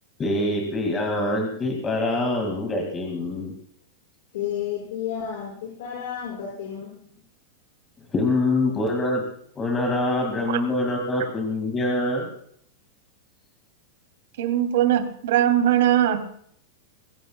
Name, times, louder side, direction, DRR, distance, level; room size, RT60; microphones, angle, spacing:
voice 1, 0.2-3.5 8.1-9.2 9.6-12.3, left 2 dB, 15° left, 1 dB, 2.3 m, -25 dB
voice 2, 4.3-7.0, left 9 dB, 60° left, -3 dB, 6.5 m, -31 dB
voice 3, 14.4-16.4, right 11 dB, 65° right, 6 dB, 3.0 m, -20 dB
23.0 x 16.0 x 2.4 m, 0.65 s
supercardioid pair, 170°, 0 cm